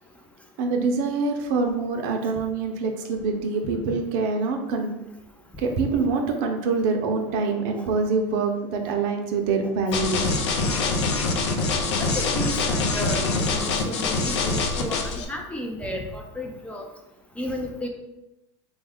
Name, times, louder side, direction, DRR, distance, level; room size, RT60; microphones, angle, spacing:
voice 1, 0.6-4.9 5.6-10.3, right 4 dB, 60° right, 4 dB, 0.6 m, -25 dB
sound 1, 9.9-15.2, left 3 dB, 85° left, 0.5 m, -24 dB
voice 2, 12.0-16.8 17.4-17.9, left 1 dB, 10° left, 1 dB, 0.4 m, -33 dB
3.5 x 2.3 x 3.4 m, 0.93 s
supercardioid pair, 120°, 14 cm